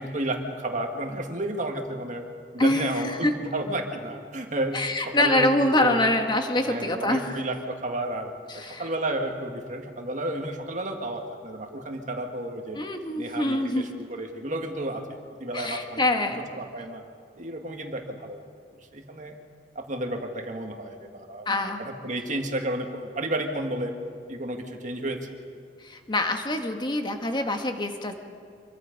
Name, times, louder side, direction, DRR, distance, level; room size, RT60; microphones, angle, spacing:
voice 1, 0.0-2.2 2.5-6.1 6.7-12.8 13.2-17.0 17.4-18.4 18.9-19.3 19.8-23.9 24.3-25.3, right 1 dB, 45° right, 3 dB, 2.0 m, -32 dB
voice 2, 2.6-3.3 4.7-7.4 8.5-8.9 12.7-13.9 15.5-16.4 21.4-21.8 25.8-28.1, left 1 dB, 25° left, 5 dB, 1.7 m, -25 dB
26.5 x 23.0 x 5.4 m, 2.2 s
head